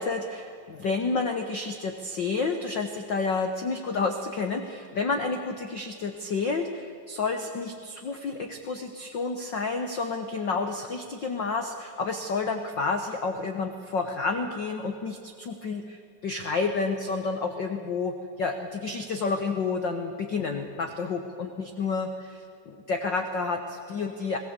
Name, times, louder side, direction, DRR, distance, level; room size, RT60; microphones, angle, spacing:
voice 1, 0.0-24.4, left 4 dB, 85° left, 6 dB, 1.0 m, -30 dB
21.5 x 18.0 x 8.1 m, 2.5 s
omnidirectional pair, 3.9 m